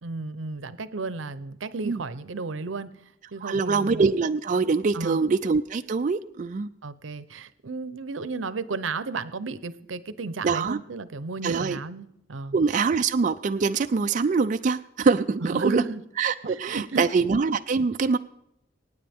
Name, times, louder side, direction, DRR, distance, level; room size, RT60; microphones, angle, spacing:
voice 1, 0.0-2.9 3.3-4.1 4.9-5.3 6.8-12.5 15.5-16.0 16.4-17.0, right 4 dB, 85° right, 15 dB, 0.7 m, -33 dB
voice 2, 3.4-6.7 10.4-10.8 11.4-11.8 12.5-15.8 16.2-18.2, right 4 dB, 40° right, 7 dB, 0.4 m, -24 dB
24.5 x 9.5 x 3.6 m, 0.81 s
head